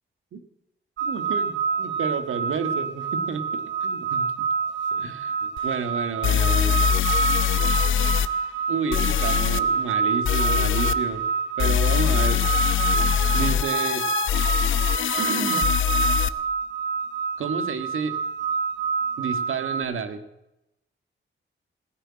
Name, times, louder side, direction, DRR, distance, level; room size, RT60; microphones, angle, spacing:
sound 1, 1.0-19.8, right 6 dB, 60° right, 1.5 m, -27 dB
voice 1, 1.0-4.3 4.9-6.8 8.7-11.3 11.6-12.4 13.3-14.1 15.2-15.7 17.4-18.2 19.2-20.2, right 5 dB, 80° right, 9 dB, 1.8 m, -30 dB
sound 2, 5.6-5.7 6.2-8.3 8.9-9.6 10.2-11.0 11.6-16.3, left 9 dB, 70° left, 0.7 m, -23 dB
16.5 x 9.8 x 7.5 m, 0.89 s
wide cardioid pair, 140°, 21 cm